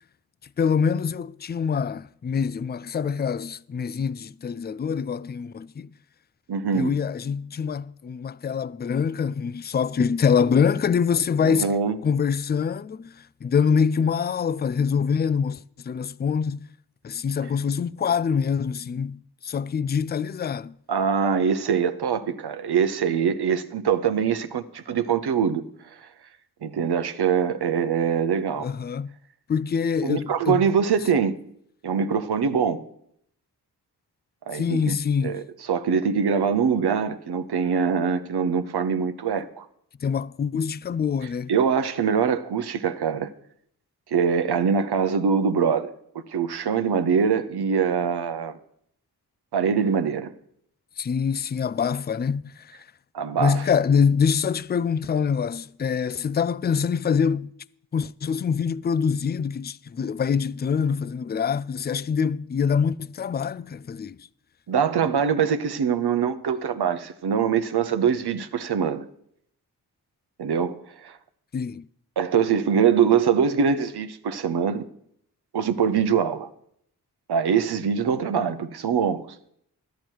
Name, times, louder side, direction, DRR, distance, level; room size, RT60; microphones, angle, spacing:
voice 1, 0.6-5.9 6.7-11.7 12.0-13.1 13.4-15.6 15.8-16.7 17.0-20.7 28.6-29.1 29.5-30.7 34.5-35.4 40.0-41.5 51.0-52.5 53.4-57.5 57.9-64.2 71.5-71.8, left 6 dB, 25° left, 0.3 m, -25 dB
voice 2, 6.5-6.9 11.4-12.0 20.9-25.6 26.0-26.1 26.6-28.7 30.0-31.4 31.8-32.8 34.5-34.9 35.2-39.7 41.5-43.3 44.1-45.9 46.3-48.6 49.5-50.3 53.1-53.6 64.7-69.1 70.4-70.7 71.0-71.2 72.2-74.8 75.5-76.5 77.3-79.3, right 6 dB, 75° right, 0.8 m, -23 dB
12.0 x 10.5 x 4.6 m
cardioid pair, 40°, 40 cm